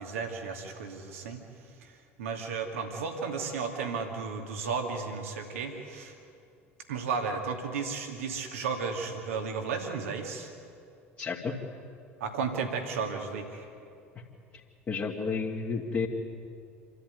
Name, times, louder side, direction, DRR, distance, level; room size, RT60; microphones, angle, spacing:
voice 1, 0.0-1.4 1.8-1.9 2.2-6.1 6.9-10.5 12.2-13.6, right 5 dB, 70° right, 4 dB, 2.6 m, -34 dB
voice 2, 11.2-11.5 14.9-16.1, left 5 dB, 30° left, -5 dB, 2.6 m, -31 dB
27.5 x 13.0 x 9.5 m, 2.5 s
figure-of-eight pair, 65°, 8 cm